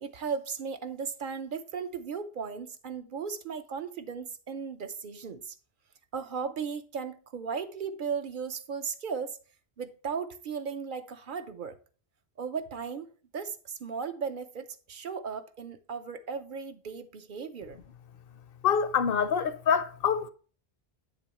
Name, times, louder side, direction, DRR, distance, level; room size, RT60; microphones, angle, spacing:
voice 1, 0.0-5.5 6.1-9.4 9.8-11.8 12.4-13.1 13.3-17.8, right 6 dB, 55° right, 0.8 m, -36 dB
voice 2, 18.6-20.3, left 7 dB, 65° left, 0.8 m, -25 dB
8.4 x 6.9 x 2.9 m
omnidirectional pair, 1.1 m